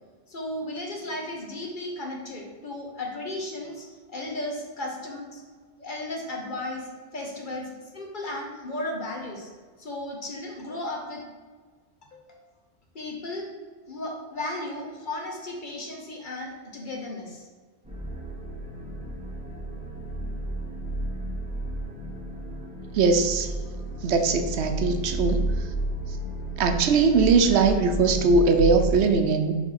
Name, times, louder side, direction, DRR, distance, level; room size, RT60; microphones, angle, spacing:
voice 1, 0.3-5.4 5.8-9.5 9.8-11.2 12.1-12.4 12.9-13.5 13.9-17.5, left 1 dB, 50° left, 0 dB, 1.3 m, -35 dB
sound 1, 17.8-29.0, right 2 dB, 5° right, 1.4 m, -32 dB
voice 2, 22.9-23.5 24.0-25.7 26.6-29.5, right 4 dB, 80° right, 7 dB, 0.9 m, -21 dB
5.1 x 4.0 x 5.6 m, 1.5 s
omnidirectional pair, 1.1 m